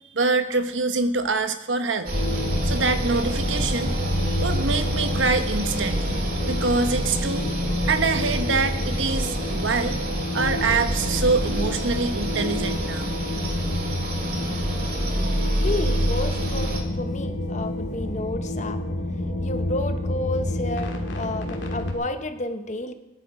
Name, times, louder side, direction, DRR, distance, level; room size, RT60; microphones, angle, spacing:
voice 1, 0.1-2.1 2.7-7.4 7.8-10.0 10.3-13.2, right 3 dB, 90° right, 9 dB, 1.0 m, -25 dB
sound 1, 2.0-16.8, right 1 dB, 55° right, 2.0 m, -29 dB
sound 2, 2.1-21.9, left 1 dB, 80° left, 2.3 m, -28 dB
voice 2, 15.6-18.8 19.4-22.9, left 2 dB, 40° left, 8 dB, 0.8 m, -31 dB
14.5 x 10.5 x 4.8 m, 1.0 s
head